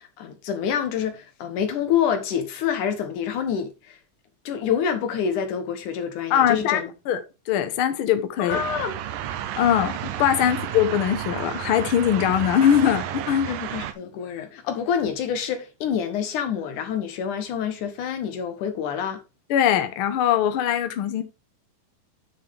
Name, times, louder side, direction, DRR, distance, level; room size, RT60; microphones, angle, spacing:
voice 1, 0.0-4.0 4.5-6.8 8.4-8.9 10.5-10.6 13.5-19.2, left 8 dB, 70° left, 2.4 m, -27 dB
voice 2, 6.3-7.2 7.5-8.6 9.6-13.5 19.5-21.2, left 10 dB, 85° left, 1.1 m, -21 dB
sound 1, 8.5-13.9, right 11 dB, 80° right, 2.5 m, -32 dB
9.6 x 6.3 x 3.5 m
omnidirectional pair, 4.0 m